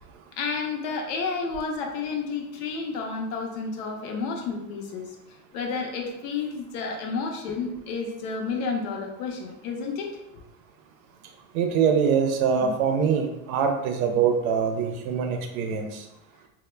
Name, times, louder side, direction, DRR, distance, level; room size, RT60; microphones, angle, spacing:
voice 1, 0.4-5.1 5.5-10.1 12.6-12.7, left 4 dB, 70° left, 2 dB, 0.6 m, -31 dB
voice 2, 11.5-16.0, right 6 dB, 90° right, 5 dB, 0.6 m, -24 dB
2.1 x 2.1 x 3.1 m, 0.88 s
supercardioid pair, 145°, 42 cm